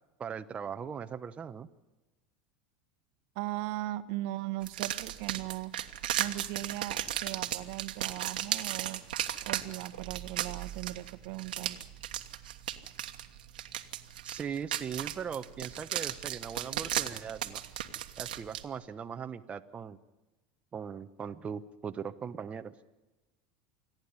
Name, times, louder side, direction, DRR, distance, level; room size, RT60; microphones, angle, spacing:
voice 1, 0.2-1.7 14.2-17.6 18.2-20.0 20.7-22.7, right 7 dB, 25° right, 8 dB, 0.9 m, -39 dB
voice 2, 3.3-5.7 6.2-9.0 9.5-11.8, right 16 dB, 65° right, 13 dB, 1.1 m, -38 dB
sound 1, 4.6-18.6, right 12 dB, 90° right, 1.4 m, -36 dB
28.0 x 10.5 x 9.7 m, 1.1 s
hypercardioid pair, 100°, 5 cm